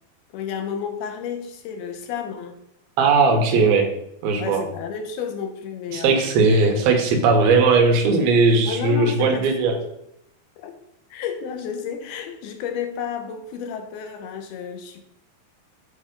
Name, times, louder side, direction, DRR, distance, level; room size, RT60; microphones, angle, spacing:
voice 1, 0.3-2.6 4.4-6.3 8.7-9.9 10.6-10.7 11.1-15.0, left 7 dB, 85° left, 6 dB, 2.7 m, -31 dB
voice 2, 3.0-3.8 4.2-4.6 5.9-9.7, right 4 dB, 75° right, 3 dB, 2.7 m, -18 dB
8.4 x 3.4 x 5.0 m, 0.77 s
omnidirectional pair, 4.5 m